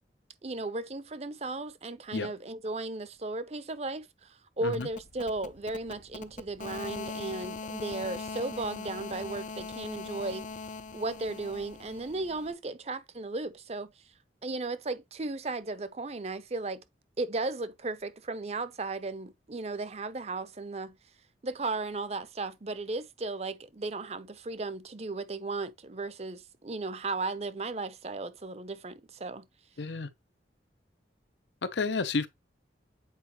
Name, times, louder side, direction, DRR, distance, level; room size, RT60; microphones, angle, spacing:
voice 1, 0.4-10.5 10.9-13.9 14.4-16.8 17.2-21.0 21.4-29.5, right 3 dB, 35° right, 0.6 m, -35 dB
sound 1, 4.6-12.5, left 4 dB, 45° left, 0.5 m, -41 dB
voice 2, 29.8-30.1 31.6-32.3, left 4 dB, 85° left, 0.7 m, -31 dB
8.2 x 4.6 x 3.0 m
head